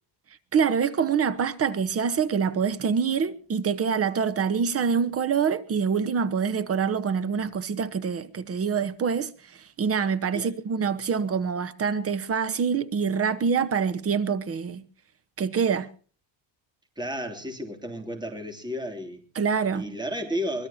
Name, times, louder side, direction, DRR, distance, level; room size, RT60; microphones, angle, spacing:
voice 1, 0.5-14.8 15.4-15.9 19.3-19.8, right 6 dB, 30° right, 1.2 m, -25 dB
voice 2, 17.0-19.2 19.7-20.7, equal, 10° right, 3.0 m, -32 dB
24.0 x 20.0 x 2.8 m
cardioid pair, 165°, 45 cm